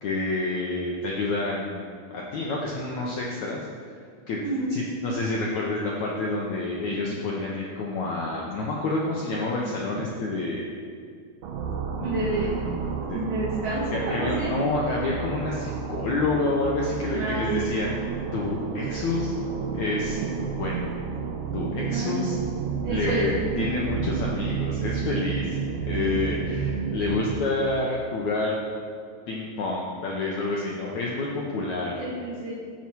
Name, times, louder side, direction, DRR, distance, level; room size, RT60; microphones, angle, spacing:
voice 1, 0.0-1.8 2.1-4.0 4.3-4.4 4.7-10.7 12.0-13.2 13.9-17.9 18.3-19.3 19.7-20.2 20.6-20.9 21.5-22.4 22.9-23.3 23.6-25.6 25.8-28.6 29.3-32.0, left 2 dB, 85° left, -3 dB, 1.6 m, -28 dB
voice 2, 4.4-4.8 12.0-12.6 13.1-14.5 17.1-17.7 21.9-22.1 22.8-23.3 23.5-23.8 32.0-32.5, right 2 dB, 55° right, -6 dB, 3.0 m, -29 dB
sound 1, 11.4-27.6, right 6 dB, 75° right, 1.8 m, -31 dB
18.0 x 7.3 x 4.7 m, 2.2 s
omnidirectional pair, 5.0 m